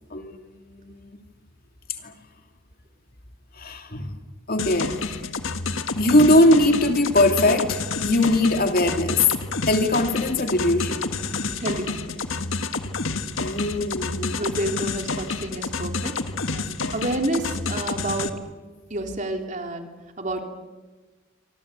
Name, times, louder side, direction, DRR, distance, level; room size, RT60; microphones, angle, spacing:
voice 1, 0.1-1.2 2.0-2.1 3.5-4.2 4.5-5.2 5.9-9.3 9.7-11.1 13.4-14.5, left 1 dB, 50° left, 5 dB, 2.7 m, -21 dB
sound 1, 4.6-18.3, left 3 dB, 90° left, 1.7 m, -29 dB
voice 2, 11.6-12.3 14.3-16.2 16.5-18.3 18.9-19.9 20.2-20.4, right 1 dB, 40° right, 4 dB, 3.4 m, -29 dB
27.0 x 25.5 x 8.4 m, 1.3 s
head